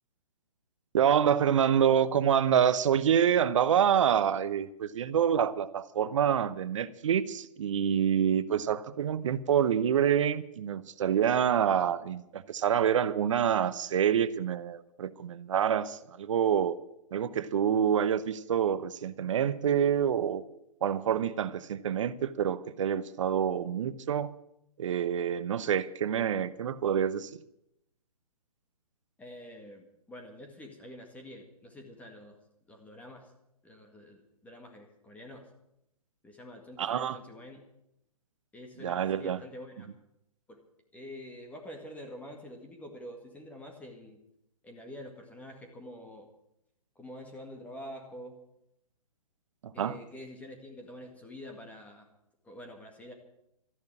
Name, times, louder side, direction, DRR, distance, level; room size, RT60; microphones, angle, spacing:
voice 1, 0.9-16.8 17.1-20.4 20.8-24.3 24.8-27.3 36.8-37.2 38.8-39.4 49.6-50.0, right 8 dB, 50° right, 15 dB, 0.9 m, -27 dB
voice 2, 29.2-32.4 32.7-33.3 33.6-35.5 36.2-37.7 38.5-39.9 40.5-40.6 40.9-44.2 44.6-46.3 47.0-48.4 49.7-52.1 52.4-53.1, left 1 dB, 5° left, 2 dB, 1.9 m, -46 dB
14.0 x 10.5 x 8.5 m, 0.80 s
figure-of-eight pair, 130°, 20 cm